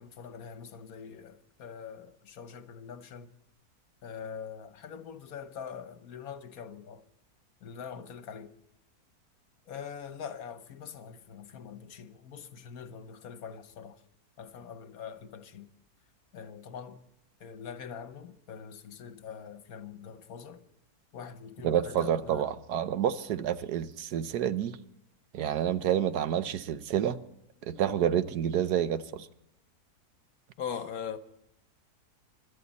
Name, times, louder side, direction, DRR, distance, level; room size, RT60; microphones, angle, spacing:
voice 1, 0.0-3.3 4.0-7.1 7.6-8.5 9.7-14.0 14.4-15.7 16.3-17.0 17.4-20.7 21.1-22.5 24.8-24.9 30.6-31.2, left 7 dB, 70° left, 1.4 m, -43 dB
voice 2, 21.6-24.8 25.3-27.2 27.6-29.3, right 9 dB, 90° right, 1.4 m, -29 dB
25.5 x 12.5 x 4.1 m
omnidirectional pair, 1.6 m